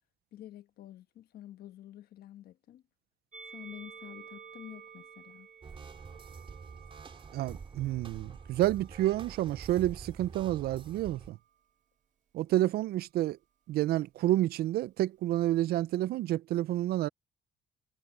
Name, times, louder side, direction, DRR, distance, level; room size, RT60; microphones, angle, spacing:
voice 1, 0.3-2.8 3.4-5.5, left 12 dB, 65° left, 1.4 m, -49 dB
Musical instrument, 3.3-9.7 10.6-11.6, right 6 dB, 45° right, 2.0 m, -53 dB
sound 1, 5.6-11.3, right 5 dB, 30° right, 3.4 m, -46 dB
voice 2, 7.3-11.4 12.3-13.4 13.7-17.1, right 14 dB, 65° right, 0.5 m, -29 dB
cardioid pair, 110°, 17 cm